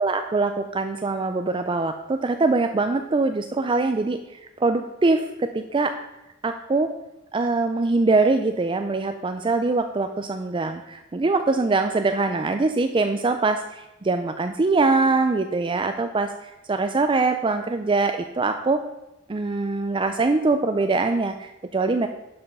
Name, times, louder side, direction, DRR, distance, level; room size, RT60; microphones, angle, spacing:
voice 1, 0.0-4.2 4.6-5.9 6.4-6.9 7.3-18.8 19.3-22.1, right 3 dB, 25° right, 7 dB, 0.4 m, -23 dB
11.0 x 5.6 x 5.4 m, 0.95 s
head